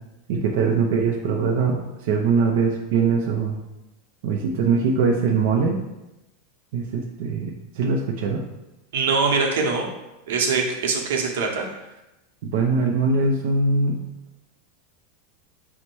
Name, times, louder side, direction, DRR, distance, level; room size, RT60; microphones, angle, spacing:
voice 1, 0.3-3.6 4.2-5.8 6.7-8.4 12.4-14.0, right 4 dB, 55° right, 0 dB, 0.5 m, -22 dB
voice 2, 8.9-9.9 10.3-11.7, right 4 dB, 85° right, 1 dB, 0.8 m, -23 dB
5.3 x 2.1 x 4.5 m, 0.96 s
supercardioid pair, 175°, 0 cm